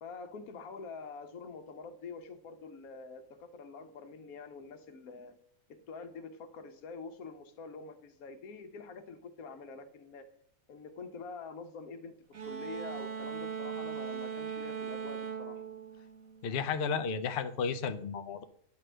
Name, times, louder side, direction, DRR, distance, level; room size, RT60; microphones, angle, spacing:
voice 1, 0.0-5.3 5.7-10.2 10.7-12.1 12.4-15.6, left 4 dB, 80° left, 1.2 m, -46 dB
sound 1, 12.3-16.8, right 7 dB, 70° right, 1.4 m, -39 dB
voice 2, 16.4-18.4, left 6 dB, 60° left, 0.6 m, -33 dB
9.5 x 3.3 x 6.2 m
omnidirectional pair, 1.5 m